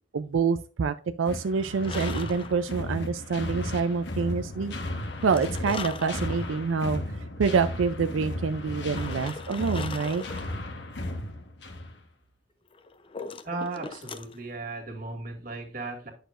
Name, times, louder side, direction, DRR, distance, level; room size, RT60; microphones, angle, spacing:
voice 1, 0.1-4.7 5.2-10.2, right 5 dB, 85° right, 10 dB, 0.4 m, -27 dB
sound 1, 1.3-12.0, left 1 dB, 60° left, 1.3 m, -35 dB
sound 2, 1.8-3.0 5.0-6.6 7.1-7.2 8.9-10.6 12.7-14.4, left 4 dB, 25° left, 0.6 m, -40 dB
voice 2, 13.4-16.1, right 3 dB, 45° right, 3 dB, 2.0 m, -36 dB
10.0 x 6.5 x 2.5 m, 0.39 s
head